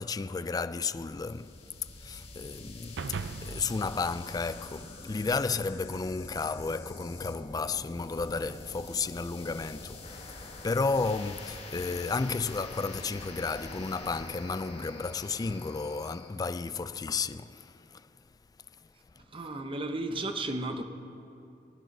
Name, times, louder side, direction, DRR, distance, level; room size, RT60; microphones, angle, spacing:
voice 1, 0.0-1.5 2.0-18.1, left 4 dB, 20° left, 0.3 m, -33 dB
sound 1, 1.0-16.3, left 2 dB, 35° left, 1.8 m, -46 dB
sound 2, 3.0-5.5, right 4 dB, 80° right, 0.5 m, -40 dB
voice 2, 19.3-20.8, right 2 dB, 30° right, 0.9 m, -33 dB
20.5 x 10.0 x 5.4 m
head